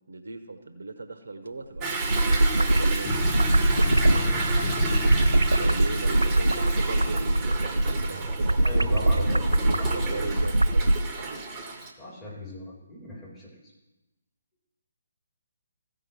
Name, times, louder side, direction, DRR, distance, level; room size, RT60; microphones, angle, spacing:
voice 1, 0.1-3.5 5.6-8.6 8.9-11.4, right 3 dB, 65° right, 9 dB, 0.9 m, -38 dB
Toilet flush / Drip / Trickle dribble, 1.8-11.9, right 3 dB, 15° right, 1.2 m, -32 dB
sound 1, 1.8-11.0, right 1 dB, 85° right, 0.3 m, -22 dB
sound 2, 3.1-7.0, left 4 dB, 40° left, 0.7 m, -34 dB
voice 2, 4.0-4.6 8.6-10.4 12.0-13.5, left 1 dB, 15° left, -7 dB, 3.8 m, -39 dB
15.5 x 5.1 x 5.7 m, 1.0 s
figure-of-eight pair, 140°, 0 cm